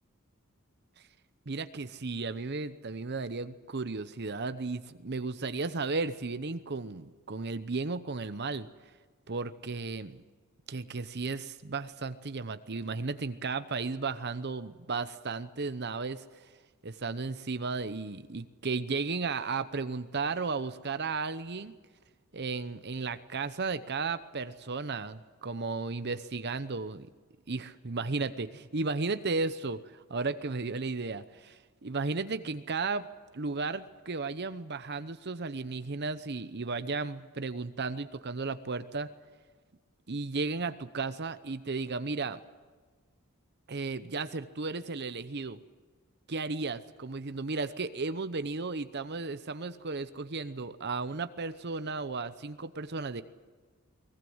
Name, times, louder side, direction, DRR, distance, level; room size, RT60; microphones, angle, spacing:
voice 1, 1.5-8.7 9.3-10.2 10.7-16.2 16.8-21.7 22.3-27.1 27.5-33.1 33.3-39.1 40.1-42.4 43.7-45.6 46.3-53.2, right 4 dB, 50° right, 12 dB, 0.9 m, -34 dB
22.5 x 20.5 x 7.9 m, 1.4 s
head